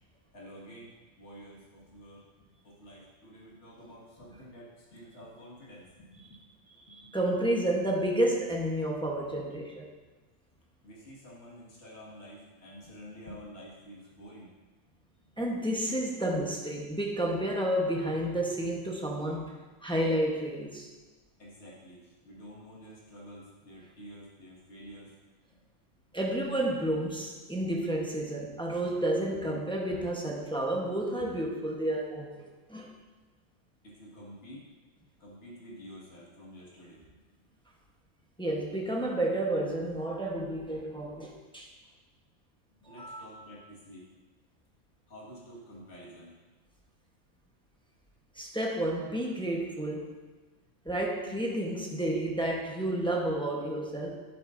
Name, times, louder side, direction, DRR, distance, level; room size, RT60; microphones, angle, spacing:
voice 1, 0.3-6.4 6.9-7.1 10.8-14.5 21.4-25.2 33.8-34.7 35.2-37.0 42.8-44.1 45.1-46.4 50.9-51.0, equal, 60° left, -6 dB, 2.2 m, -49 dB
voice 2, 6.9-9.9 15.4-20.9 26.1-32.9 38.4-41.7 42.8-43.3 48.4-50.1 50.8-54.2, right 1 dB, 5° left, -1 dB, 0.9 m, -31 dB
10.5 x 8.6 x 2.6 m, 1.3 s
omnidirectional pair, 1.3 m